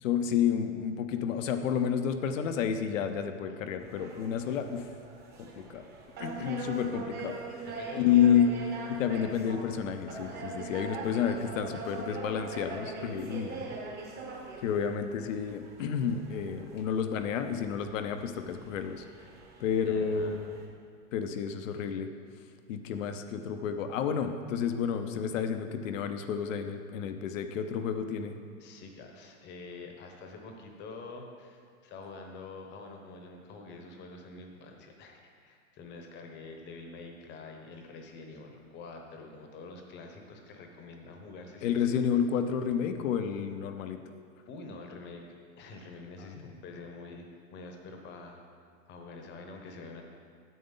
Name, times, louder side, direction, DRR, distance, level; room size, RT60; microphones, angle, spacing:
voice 1, 0.0-4.8 5.4-5.9 6.2-7.4 8.0-8.5 8.9-13.5 14.6-19.0 19.6-20.5 21.1-22.1 22.7-28.3 41.6-44.0 46.4-46.5, left 8 dB, 65° left, 8 dB, 0.8 m, -30 dB
sound 1, 3.8-20.7, right 4 dB, 25° right, 1.1 m, -43 dB
voice 2, 7.7-8.5 13.3-13.7 19.8-20.4 28.6-42.0 44.5-45.2 45.6-48.4 48.9-50.0, left 3 dB, 25° left, 3 dB, 1.0 m, -46 dB
9.4 x 7.7 x 3.9 m, 2.1 s
hypercardioid pair, 145°, 42 cm